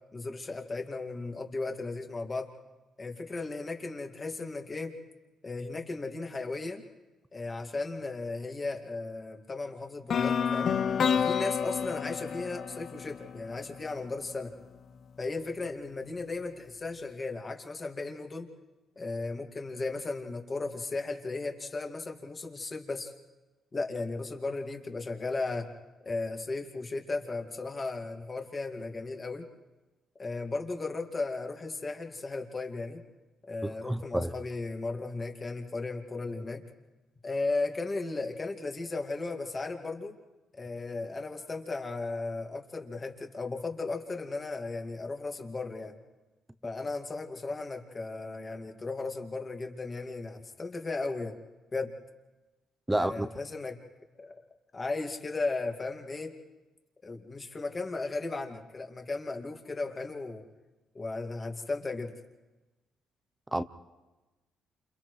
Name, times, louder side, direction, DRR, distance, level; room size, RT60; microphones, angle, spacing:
voice 1, 0.1-2.5 3.0-4.9 5.4-6.8 7.3-10.7 11.1-14.5 15.2-18.5 19.0-23.1 23.7-25.7 26.1-29.5 30.2-33.0 33.5-36.6 37.2-40.2 40.5-45.9 46.6-51.4 51.7-51.9 52.9-53.8 54.2-54.4 54.7-56.3 57.0-60.4 60.9-62.1, left 3 dB, 30° left, 2.2 m, -35 dB
sound 1, 10.1-14.1, left 7 dB, 55° left, 0.6 m, -29 dB
voice 2, 33.6-34.3 52.9-53.3 63.5-63.6, right 1 dB, 10° right, 0.7 m, -29 dB
29.5 x 28.0 x 3.3 m
cardioid pair, 90°, 0 cm